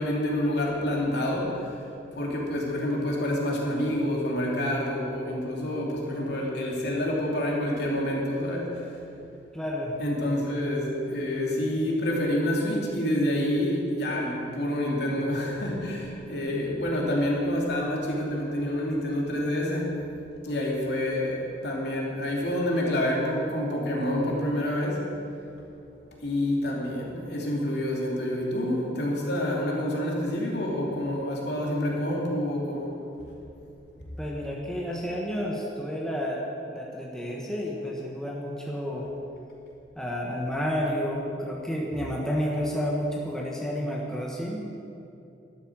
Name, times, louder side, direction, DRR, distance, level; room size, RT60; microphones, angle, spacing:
voice 1, 0.0-1.7 2.2-8.9 10.0-20.0 20.4-25.0 26.2-32.9, left 1 dB, 60° left, -3 dB, 2.9 m, -28 dB
voice 2, 9.5-9.9 34.2-36.4 36.7-39.1 40.0-44.9, equal, 5° left, -3 dB, 1.3 m, -30 dB
12.5 x 12.0 x 6.3 m, 2.8 s
head